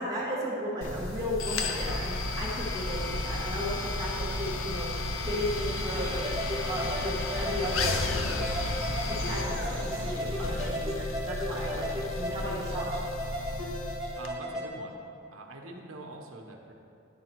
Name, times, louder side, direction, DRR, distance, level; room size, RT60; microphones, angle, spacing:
voice 1, 0.0-8.4 9.0-13.0, equal, 15° right, -9 dB, 1.3 m, -35 dB
sound 1, 0.8-14.3, left 2 dB, 70° left, 0.6 m, -33 dB
sound 2, 5.2-10.8, right 1 dB, 45° right, 1.1 m, -42 dB
sound 3, 5.9-14.7, equal, ahead, 1.4 m, -35 dB
voice 2, 14.2-15.0 15.3-16.7, right 2 dB, 85° right, 2 dB, 1.0 m, -44 dB
11.0 x 4.8 x 4.6 m, 2.6 s
head